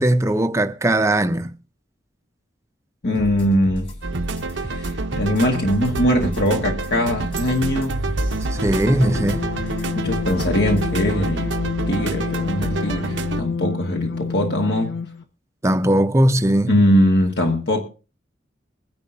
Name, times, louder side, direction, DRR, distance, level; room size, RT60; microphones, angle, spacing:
voice 1, 0.0-1.6 8.5-9.5 15.6-16.7, right 1 dB, 15° right, 0.5 m, -19 dB
voice 2, 3.0-3.9 4.6-8.1 9.9-11.5 11.9-15.0 16.7-17.8, equal, 60° left, 1.4 m, -21 dB
sound 1, 3.1-10.9, equal, 30° left, 2.5 m, -34 dB
sound 2, 4.0-13.4, right 3 dB, 85° right, 0.7 m, -27 dB
sound 3, 8.4-15.2, left 5 dB, 80° left, 0.5 m, -29 dB
22.0 x 10.5 x 2.5 m
head